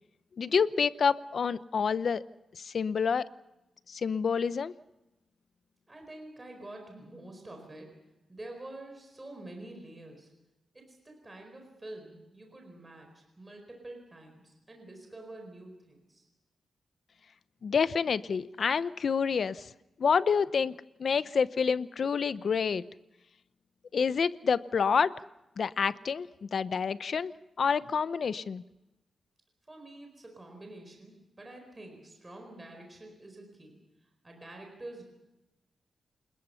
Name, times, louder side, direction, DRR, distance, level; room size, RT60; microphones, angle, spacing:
voice 1, 0.4-2.2 2.5-3.3 3.9-4.7 17.6-19.7 20.0-20.7 21.0-22.9 23.9-25.1 25.6-28.6, left 6 dB, 50° left, 15 dB, 0.7 m, -28 dB
voice 2, 5.9-7.9 8.3-10.3 10.7-16.3 29.7-35.0, right 1 dB, 15° right, 2 dB, 4.5 m, -47 dB
29.0 x 20.5 x 5.7 m, 0.96 s
wide cardioid pair, 155°, 0 cm